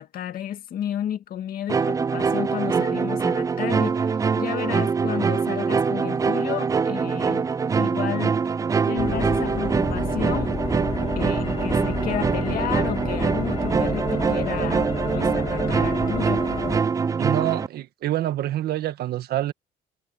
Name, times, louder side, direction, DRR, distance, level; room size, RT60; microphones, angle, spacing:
voice 1, 0.0-7.5 7.8-8.3 8.9-10.6 11.2-16.5, left 10 dB, 60° left, 2.0 m, -32 dB
sound 1, 1.7-17.7, right 5 dB, 20° right, 0.3 m, -24 dB
sound 2, 9.0-16.8, left 6 dB, 35° left, 2.2 m, -31 dB
voice 2, 17.2-19.5, right 13 dB, 70° right, 1.7 m, -26 dB
cardioid pair, 110°, 17 cm